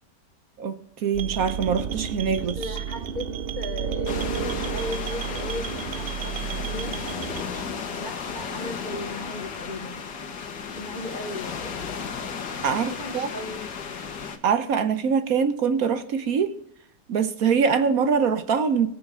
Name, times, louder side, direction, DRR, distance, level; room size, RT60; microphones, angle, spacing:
voice 1, 0.6-2.6 12.6-13.3 14.4-16.5 17.1-18.9, right 6 dB, 60° right, 1.2 m, -23 dB
sound 1, 1.1-7.4, right 8 dB, 75° right, 0.5 m, -31 dB
voice 2, 2.4-3.3 3.5-7.0 7.4-10.0 10.7-11.7 12.6-13.7, left 2 dB, 35° left, 0.8 m, -37 dB
sound 2, 4.1-14.4, left 6 dB, 85° left, 1.9 m, -34 dB
20.0 x 7.3 x 3.6 m
omnidirectional pair, 1.8 m